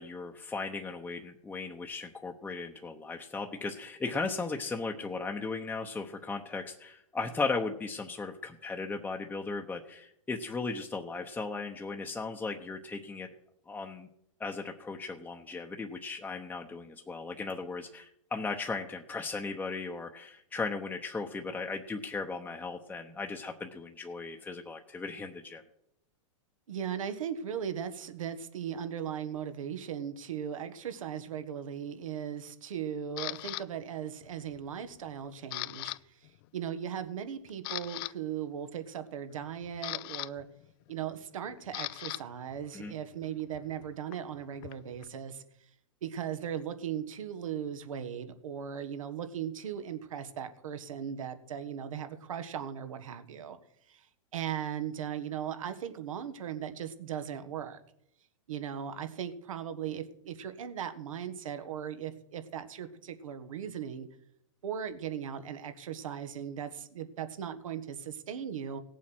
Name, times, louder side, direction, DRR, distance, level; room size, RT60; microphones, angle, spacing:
voice 1, 0.0-13.3 13.7-14.1 14.4-25.6 42.7-42.9, left 4 dB, 10° left, 2 dB, 0.9 m, -37 dB
voice 2, 26.7-40.5 40.9-45.4 46.0-53.6 53.9-54.1 54.3-57.8 58.5-64.1 64.6-68.8, right 9 dB, 80° right, 10 dB, 1.6 m, -38 dB
Camera, 33.2-33.6 34.2-34.6 34.9-36.0 36.2-36.5 37.0-37.1 37.5-38.1 39.3-42.2 42.5-45.1, left 21 dB, 45° left, 0.4 m, -40 dB
17.0 x 7.4 x 6.2 m, 0.75 s
hypercardioid pair, 125°, 17 cm